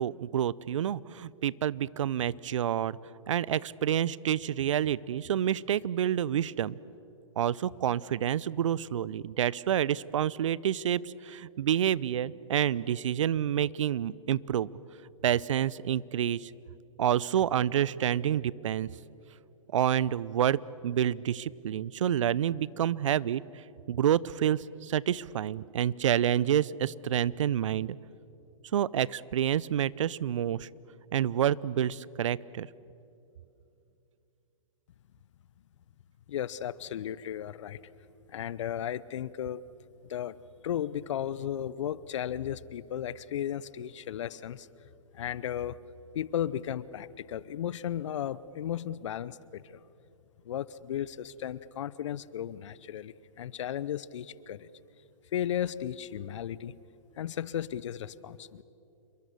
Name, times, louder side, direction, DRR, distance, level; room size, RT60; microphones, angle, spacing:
voice 1, 0.0-3.0 3.3-6.8 7.4-14.7 15.2-16.5 17.0-18.9 19.7-20.6 20.8-23.4 23.9-28.0 28.7-30.7 31.1-32.7, right 10 dB, 65° right, 22 dB, 0.6 m, -28 dB
voice 2, 36.3-37.8 38.3-39.6 40.1-40.4 40.6-44.7 45.1-45.8 46.1-49.8 50.4-54.7 55.3-56.8 57.2-58.6, left 10 dB, 60° left, 19 dB, 0.8 m, -35 dB
28.5 x 23.0 x 6.7 m, 2.8 s
hypercardioid pair, 125°, 17 cm